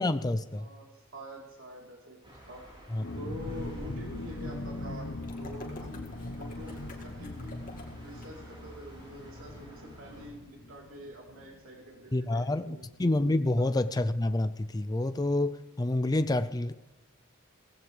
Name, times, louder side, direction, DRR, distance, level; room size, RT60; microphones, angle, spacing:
voice 1, 0.0-0.7 2.9-3.0 12.1-16.7, left 2 dB, 20° left, 10 dB, 0.5 m, -28 dB
voice 2, 0.6-2.2 2.5-2.6 3.2-5.1 5.4-6.1 6.3-7.6 8.0-12.9 13.6-13.7, equal, 70° right, -1 dB, 3.7 m, -46 dB
sound 1, 2.2-10.3, equal, 25° right, 4.5 m, -52 dB
sound 2, 3.0-12.4 12.7-12.8 13.1-13.4, left 2 dB, 65° left, 1.0 m, -41 dB
sound 3, 5.2-8.3, left 2 dB, 40° left, 2.1 m, -49 dB
17.5 x 15.5 x 3.3 m, 1.2 s
head